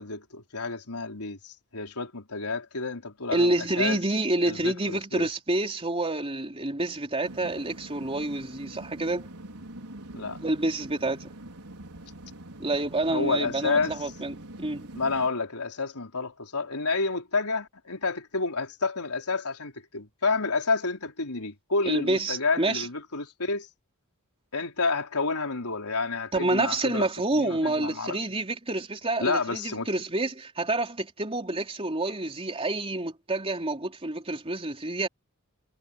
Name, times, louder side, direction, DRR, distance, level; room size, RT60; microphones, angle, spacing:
voice 1, 0.0-4.0 4.4-5.3 10.1-10.4 13.1-14.1 14.9-23.7 24.5-28.2 29.2-29.9, left 4 dB, 85° left, 4.3 m, -30 dB
voice 2, 3.3-9.3 10.4-11.3 12.6-14.9 21.8-22.9 26.3-35.1, right 2 dB, 25° right, 3.5 m, -28 dB
sound 1, 7.2-15.3, right 1 dB, 90° right, 5.1 m, -44 dB
head